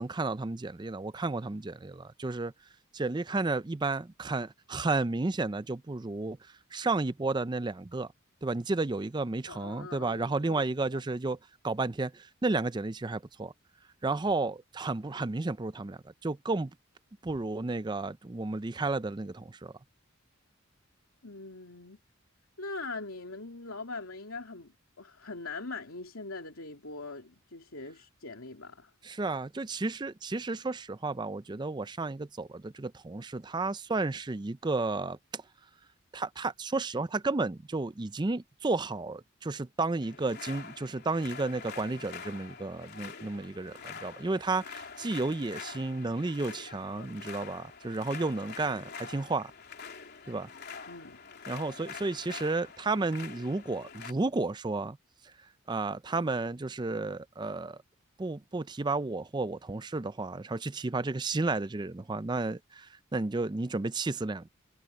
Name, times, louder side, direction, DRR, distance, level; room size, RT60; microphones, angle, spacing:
voice 1, 0.0-2.5 2.9-6.4 6.7-8.1 8.4-11.4 11.6-13.5 14.0-16.7 17.2-19.7 29.0-35.4 36.1-49.5 50.3-50.5 51.5-55.0 55.7-57.8 58.2-64.5, right 3 dB, 20° right, 0.5 m, -32 dB
voice 2, 9.5-10.6 10.9-11.0 21.2-22.0 22.6-28.9 50.9-51.2, left 3 dB, 80° left, 3.0 m, -42 dB
sound 1, 40.0-54.1, left 5 dB, 50° left, 3.6 m, -45 dB
head